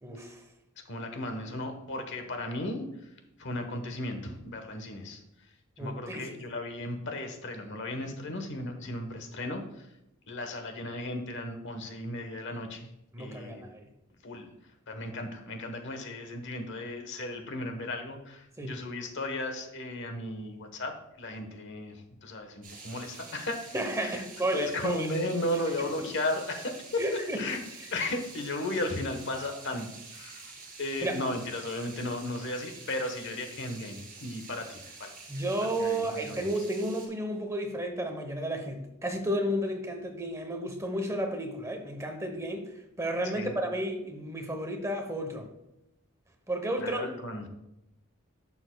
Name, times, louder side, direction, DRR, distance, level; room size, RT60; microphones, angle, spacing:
voice 1, 0.0-0.4 5.8-6.3 13.1-13.9 18.6-18.7 23.7-25.1 25.8-25.9 27.0-27.5 31.0-31.2 35.3-42.7 43.0-45.5 46.5-47.1, right 1 dB, 15° right, 4 dB, 0.9 m, -32 dB
voice 2, 0.9-2.9 3.4-5.2 5.8-9.9 10.3-12.9 13.2-13.6 14.2-14.5 14.9-23.7 24.0-24.2 24.5-27.0 27.3-27.6 27.9-30.5 30.8-35.1 35.6-36.5 43.3-43.5 46.8-47.5, left 1 dB, 60° left, 6 dB, 1.1 m, -35 dB
sound 1, 22.6-37.1, right 4 dB, 40° right, 2.7 m, -48 dB
11.0 x 6.9 x 2.2 m, 0.87 s
head